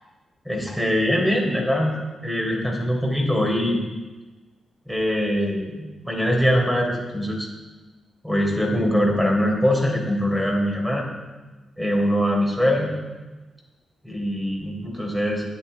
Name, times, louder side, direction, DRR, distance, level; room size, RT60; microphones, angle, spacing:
voice 1, 0.5-2.0 2.2-3.8 4.9-7.5 8.2-11.1 11.8-13.0 14.0-15.4, equal, 5° right, -1 dB, 4.0 m, -22 dB
9.7 x 9.5 x 4.6 m, 1.2 s
supercardioid pair, 50°, 0 cm